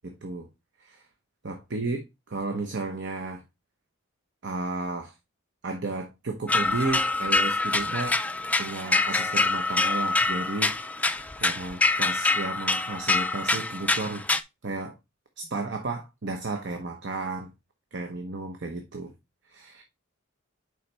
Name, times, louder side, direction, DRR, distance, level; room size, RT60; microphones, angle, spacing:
voice 1, 0.0-0.5 0.8-1.0 1.4-2.0 2.3-3.4 4.4-5.1 5.6-8.2 8.6-14.3 14.6-15.0 15.4-17.5 17.9-19.1 19.5-19.8, right 3 dB, 55° right, 0.9 m, -33 dB
sound 1, 6.5-14.4, left 3 dB, 5° left, 0.3 m, -25 dB
7.0 x 5.0 x 3.3 m
head